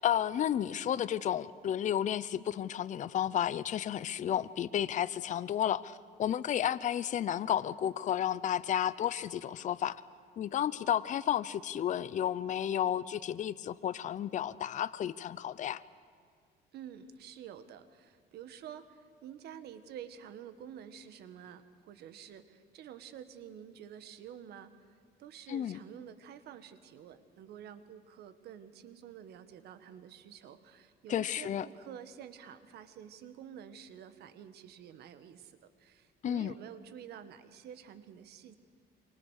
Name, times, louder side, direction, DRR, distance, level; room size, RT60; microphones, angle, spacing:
voice 1, 0.0-10.0 10.4-15.8 25.5-25.8 31.1-31.7 36.2-36.5, left 10 dB, 45° left, 15 dB, 0.7 m, -32 dB
voice 2, 16.7-24.7 25.2-38.6, right 9 dB, 75° right, 11 dB, 1.7 m, -49 dB
28.0 x 24.0 x 6.5 m, 2.1 s
cardioid pair, 110°, 17 cm